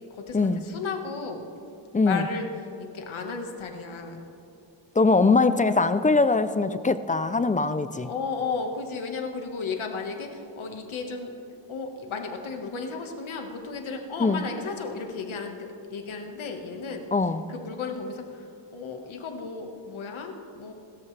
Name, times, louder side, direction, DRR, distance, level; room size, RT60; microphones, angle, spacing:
voice 1, 0.3-1.4 2.0-2.5 2.8-4.3 8.0-11.3 11.7-17.0 17.5-20.7, left 4 dB, 75° left, 3 dB, 1.5 m, -34 dB
voice 2, 1.9-2.3 5.0-8.1 14.2-14.4 17.1-17.5, left 3 dB, 20° left, 12 dB, 0.3 m, -22 dB
28.5 x 14.0 x 3.3 m, 2.8 s
wide cardioid pair, 155°, 48 cm